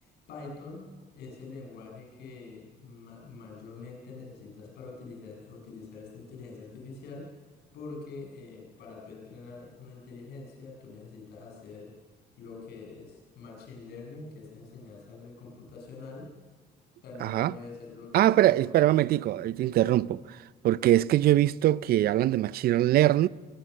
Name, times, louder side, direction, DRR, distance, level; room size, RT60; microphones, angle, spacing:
voice 1, 0.0-0.9 1.1-7.4 7.7-11.9 12.4-16.3 17.0-18.7 19.6-20.0, left 4 dB, 75° left, 7.0 m, -45 dB
voice 2, 17.2-17.5 18.1-20.1 20.6-23.3, right 14 dB, 65° right, 0.6 m, -22 dB
22.5 x 19.0 x 6.6 m
cardioid pair, 110°, 17 cm